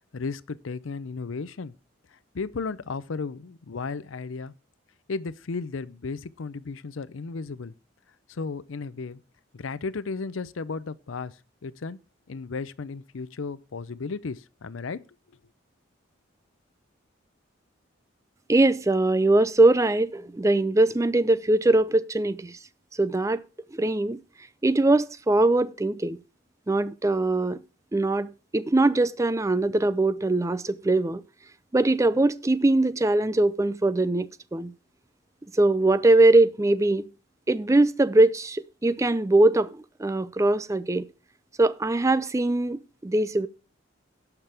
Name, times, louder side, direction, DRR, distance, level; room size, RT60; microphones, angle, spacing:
voice 1, 0.1-1.7 2.1-4.5 5.1-7.7 8.3-9.2 9.5-11.3 11.6-12.0 12.3-15.0, left 4 dB, 75° left, 0.6 m, -34 dB
voice 2, 18.5-22.6 23.0-23.4 23.7-24.2 24.6-26.2 26.7-27.6 27.9-31.2 31.7-34.7 35.5-37.1 37.5-41.1 41.6-43.5, right 2 dB, 15° right, 0.4 m, -22 dB
17.5 x 5.9 x 3.4 m
head